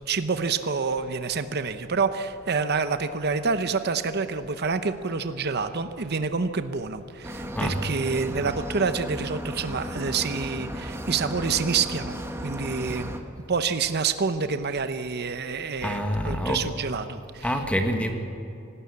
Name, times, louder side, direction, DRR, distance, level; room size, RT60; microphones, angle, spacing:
voice 1, 0.1-13.1 13.5-17.5, right 5 dB, 55° right, 10 dB, 0.8 m, -27 dB
sound 1, 7.2-13.2, equal, 15° right, 1.4 m, -35 dB
voice 2, 15.8-16.6 17.4-18.1, equal, 5° left, 4 dB, 1.5 m, -26 dB
25.5 x 12.5 x 8.4 m, 2.8 s
head